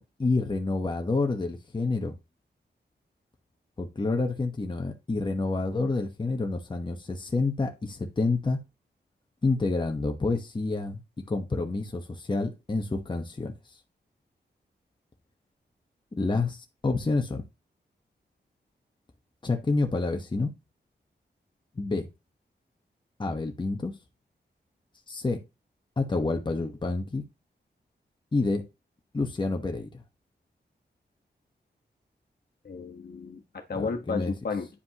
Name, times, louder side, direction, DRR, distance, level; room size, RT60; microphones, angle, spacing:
voice 1, 0.0-2.1 3.8-8.6 9.4-11.0 11.3-13.5 16.2-17.4 19.4-20.5 21.8-22.1 23.2-23.9 25.1-25.4 26.0-27.2 28.3-28.6 29.1-30.0 33.7-34.3, left 3 dB, 25° left, 1.1 m, -28 dB
voice 2, 32.6-34.7, left 4 dB, 60° left, 1.4 m, -33 dB
9.9 x 5.1 x 3.0 m
wide cardioid pair, 125°, 18 cm